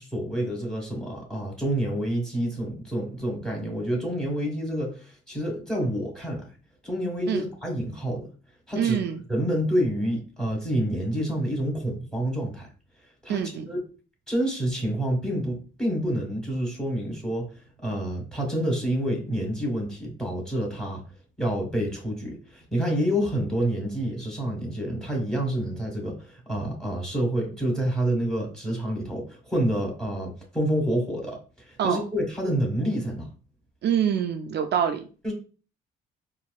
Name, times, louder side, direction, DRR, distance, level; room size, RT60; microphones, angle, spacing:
voice 1, 0.0-6.5 6.8-8.3 8.7-9.0 9.3-12.7 13.2-13.8 14.3-17.5 17.8-21.0 21.4-31.4 31.7-33.3 35.2-35.3, equal, 5° left, 0 dB, 1.6 m, -28 dB
voice 2, 8.8-9.2 13.3-13.7 31.8-32.0 33.8-35.1, right 8 dB, 60° right, 6 dB, 0.4 m, -25 dB
4.1 x 2.5 x 2.3 m, 0.36 s
cardioid pair, 90°, 20 cm